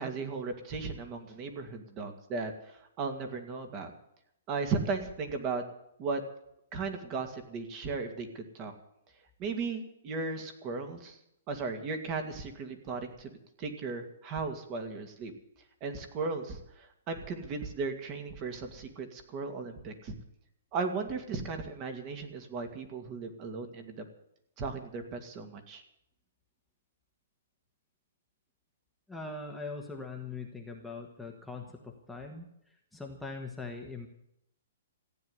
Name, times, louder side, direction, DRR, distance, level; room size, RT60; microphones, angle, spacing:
voice 1, 0.0-3.9 4.5-5.6 6.0-6.2 6.7-8.7 9.4-11.2 11.5-13.3 13.6-15.3 15.8-20.1 20.7-24.0 24.6-25.8, right 4 dB, 30° right, 6 dB, 2.2 m, -36 dB
voice 2, 29.1-34.1, left 3 dB, ahead, -1 dB, 1.4 m, -42 dB
15.5 x 9.4 x 9.6 m, 0.77 s
hypercardioid pair, 155°, 0 cm